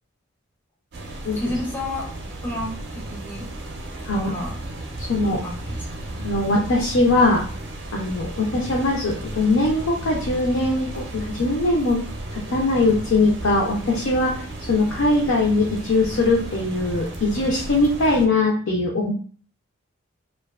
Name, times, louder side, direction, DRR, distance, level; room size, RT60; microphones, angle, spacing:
sound 1, 0.9-18.3, right 1 dB, 50° right, 0.4 m, -34 dB
voice 1, 1.3-2.1 2.4-3.5 4.1-4.6 5.4-6.0, left 1 dB, 10° left, -3 dB, 0.5 m, -31 dB
voice 2, 5.0-5.4 6.2-7.4 7.9-12.0 12.3-14.4 14.7-19.1, left 2 dB, 65° left, -2 dB, 0.5 m, -21 dB
2.7 x 2.2 x 2.2 m, 0.42 s
head